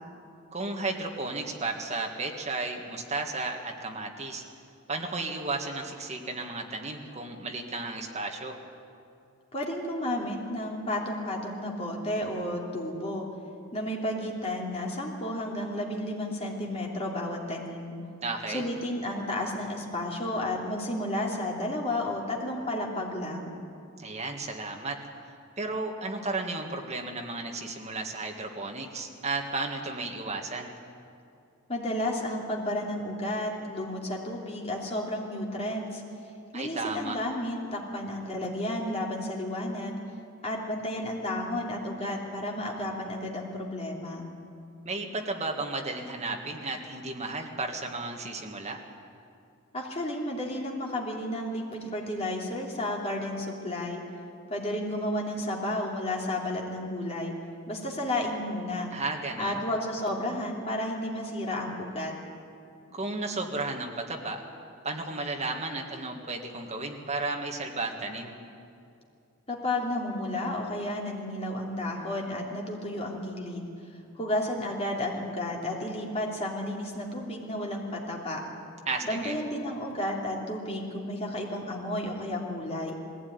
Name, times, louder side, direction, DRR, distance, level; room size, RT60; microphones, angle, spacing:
voice 1, 0.5-4.4 4.9-8.6 18.2-18.6 24.0-25.0 25.6-30.7 36.5-37.2 44.8-48.8 58.9-59.6 62.9-64.4 64.8-68.3 78.9-79.4, right 3 dB, 30° right, 2 dB, 1.8 m, -33 dB
voice 2, 9.5-13.3 13.7-17.9 18.5-23.5 31.7-36.0 36.5-40.0 40.4-44.3 49.7-54.0 54.5-57.3 57.7-58.9 59.4-62.1 69.5-73.7 74.1-78.4 79.0-82.9, left 1 dB, 30° left, -2 dB, 3.0 m, -32 dB
20.0 x 16.0 x 9.6 m, 2.5 s
head